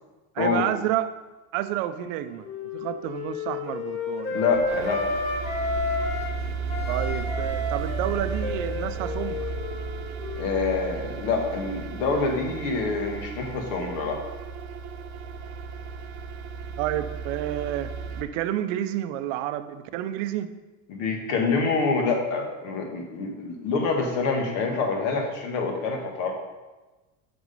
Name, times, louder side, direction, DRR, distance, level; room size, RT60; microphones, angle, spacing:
voice 1, 0.3-1.1 1.5-2.5 2.7-4.4 6.9-9.5 16.8-17.9 18.2-20.5, right 12 dB, 70° right, 11 dB, 0.6 m, -29 dB
Wind instrument woodwind instrument, 1.8-6.3 6.7-11.2, left 3 dB, 15° left, 1.0 m, -32 dB
voice 2, 4.3-5.0 10.4-14.2 20.9-26.3, left 4 dB, 65° left, 2 dB, 1.8 m, -26 dB
sound 1, 4.5-18.2, right 5 dB, 85° right, 0.9 m, -34 dB
6.2 x 6.1 x 5.3 m, 1.2 s
cardioid pair, 155°, 41 cm